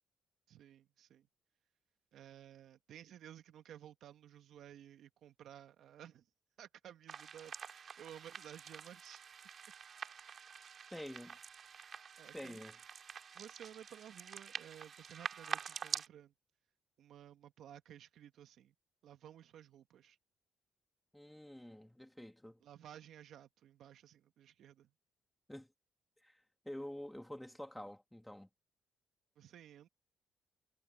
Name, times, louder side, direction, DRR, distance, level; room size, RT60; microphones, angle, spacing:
voice 1, 0.5-1.3 2.1-6.3 6.6-9.2 12.2-12.6 13.3-16.3 17.0-18.7 19.0-20.2 22.6-24.9 29.4-29.9, right 10 dB, 75° right, 1.8 m, -55 dB
sound 1, 7.1-16.1, right 7 dB, 55° right, 2.6 m, -46 dB
voice 2, 10.9-11.4 12.3-12.8 21.1-22.6 25.5-25.7 26.2-26.3 26.6-28.5, left 1 dB, 5° left, 2.8 m, -48 dB
cardioid pair, 90°, 0 cm